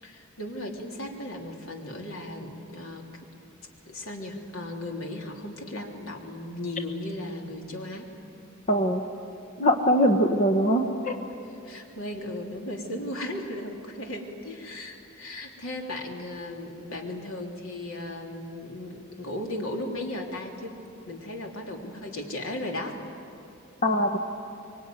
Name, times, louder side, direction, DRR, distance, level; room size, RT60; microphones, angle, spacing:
voice 1, 0.0-3.1 3.9-8.1 11.6-20.8 21.0-23.0, left 1 dB, 85° left, 1 dB, 3.3 m, -36 dB
voice 2, 8.7-9.0 9.6-11.2 23.8-24.2, equal, 40° left, 4 dB, 1.2 m, -22 dB
25.0 x 23.5 x 9.3 m, 2.6 s
head